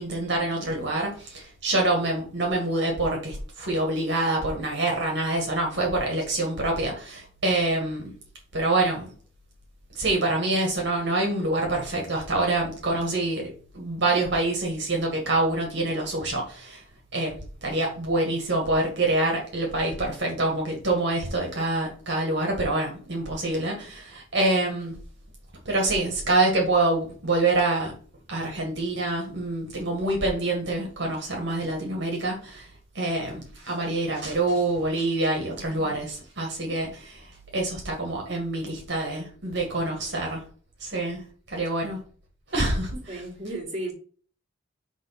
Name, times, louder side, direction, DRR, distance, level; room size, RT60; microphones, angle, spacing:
voice 1, 0.0-8.1 8.5-9.1 10.0-16.8 17.1-17.4 17.6-24.9 25.7-27.9 28.3-32.7 33.0-37.3 37.5-40.4 40.8-41.2 41.5-42.0 42.5-43.2, right 2 dB, 55° right, 0 dB, 1.9 m, -26 dB
voice 2, 43.1-43.9, right 1 dB, 30° right, -3 dB, 2.4 m, -34 dB
6.2 x 3.7 x 5.7 m, 0.44 s
head